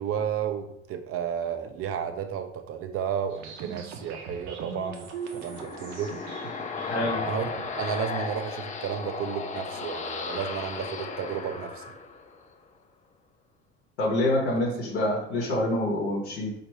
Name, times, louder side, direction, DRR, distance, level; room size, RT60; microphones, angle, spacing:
voice 1, 0.0-6.2 7.3-11.9, right 8 dB, 45° right, 7 dB, 0.6 m, -32 dB
sound 1, 3.3-7.3, right 5 dB, 80° right, 0.7 m, -41 dB
sound 2, 5.0-12.5, left 4 dB, 20° left, 0.4 m, -35 dB
voice 2, 6.9-7.3 14.0-16.5, left 1 dB, 90° left, -4 dB, 1.0 m, -26 dB
4.3 x 2.7 x 3.0 m, 0.77 s
hypercardioid pair, 70°, 33 cm